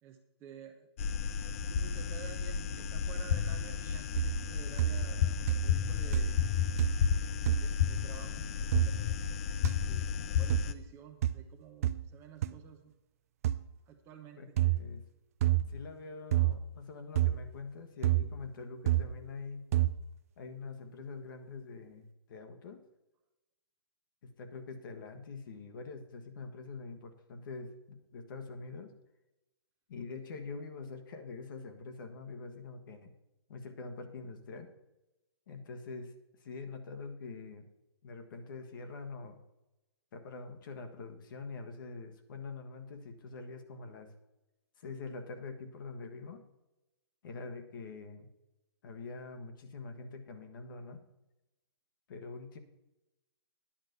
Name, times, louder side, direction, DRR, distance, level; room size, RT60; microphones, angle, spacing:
voice 1, 0.0-0.9 1.7-6.5 7.5-8.5 8.8-9.1 9.9-10.0 10.4-12.9 13.9-14.6, right 7 dB, 15° right, 5 dB, 0.8 m, -51 dB
sound 1, 1.0-10.7, left 7 dB, 30° left, 0.5 m, -32 dB
sound 2, 4.2-4.5 4.8-5.2 5.5-5.9 6.1-6.5 6.8-7.1 7.5-7.7 8.7-8.9 9.6-9.7 10.5-10.7 11.2-11.4 11.8-12.0 12.4-12.5 13.4-13.6 14.6-14.8 15.4-15.7 16.3-16.6 17.2-17.4 18.0-18.3 18.9-19.1 19.7-20.0, right 14 dB, 35° right, 0.4 m, -28 dB
voice 2, 14.4-15.0 15.6-19.7 20.4-22.8 24.2-28.9 29.9-33.1 33.5-34.7 35.5-36.1 36.4-37.7 38.0-39.4 40.1-44.1 44.8-46.4 47.2-48.3 48.8-51.0 52.1-52.6, left 4 dB, 50° left, 7 dB, 1.5 m, -45 dB
10.5 x 6.2 x 6.8 m, 0.95 s
hypercardioid pair, 155°, 14 cm